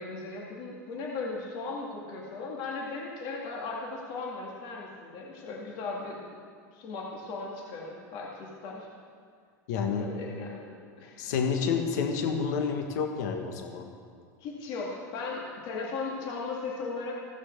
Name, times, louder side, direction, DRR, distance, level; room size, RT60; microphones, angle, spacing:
voice 1, 0.0-6.4 6.7-8.9 9.9-11.3 14.4-17.1, left 3 dB, 55° left, -2 dB, 2.1 m, -37 dB
voice 2, 9.7-10.1 11.2-13.9, left 6 dB, 75° left, 4 dB, 1.3 m, -29 dB
15.5 x 6.4 x 6.5 m, 2.1 s
hypercardioid pair, 105°, 10 cm